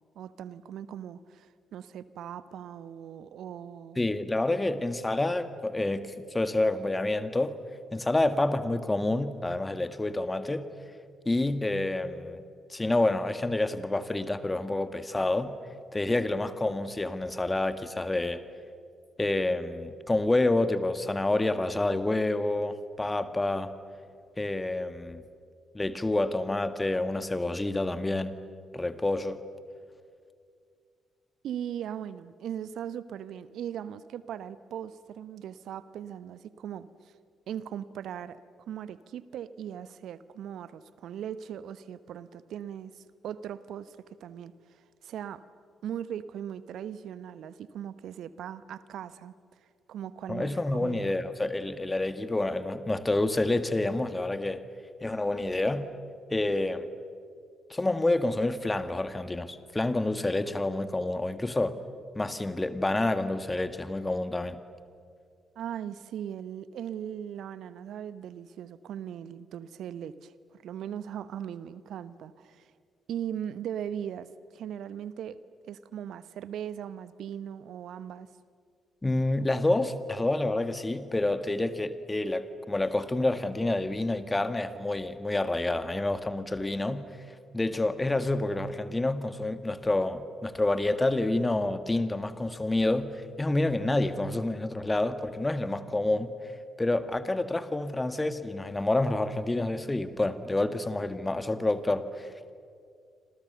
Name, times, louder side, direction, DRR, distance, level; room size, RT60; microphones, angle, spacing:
voice 1, 0.1-4.0 31.4-36.9 37.5-44.0 44.2-44.5 45.0-45.4 45.8-49.3 49.9-51.1 65.6-72.7 73.1-74.3 74.5-75.4 75.6-78.3, right 9 dB, 65° right, 15 dB, 0.9 m, -39 dB
voice 2, 4.0-7.6 7.9-10.7 11.3-12.4 12.7-15.6 15.9-18.4 19.2-23.7 24.4-25.2 25.7-28.3 28.7-29.4 50.3-54.6 55.0-55.9 56.3-56.9 57.7-61.8 62.1-64.6 79.0-87.0 87.5-96.3 96.8-102.5, left 2 dB, 20° left, 10 dB, 1.9 m, -28 dB
30.0 x 26.5 x 6.9 m, 2.2 s
figure-of-eight pair, 40°, 0 cm